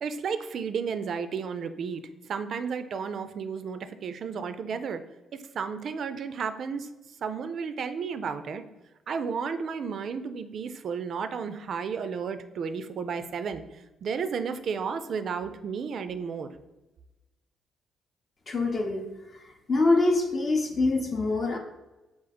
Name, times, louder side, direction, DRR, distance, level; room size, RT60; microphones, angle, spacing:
voice 1, 0.0-5.0 5.3-6.9 7.2-8.6 9.1-16.5, right 6 dB, 60° right, 10 dB, 0.3 m, -33 dB
voice 2, 18.5-19.0 19.7-21.6, left 3 dB, 40° left, 3 dB, 0.6 m, -24 dB
3.8 x 2.4 x 4.1 m, 1.0 s
cardioid pair, 90°, 0 cm